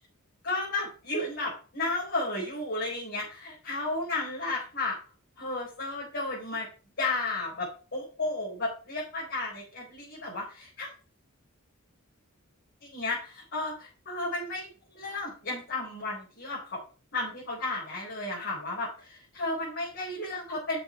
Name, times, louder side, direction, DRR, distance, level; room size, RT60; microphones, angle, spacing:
voice 1, 0.4-5.0 5.4-6.7 7.0-10.9 12.8-14.7 14.9-16.8 17.1-20.8, left 2 dB, 55° left, -5 dB, 4.4 m, -33 dB
6.7 x 6.6 x 5.9 m, 0.35 s
head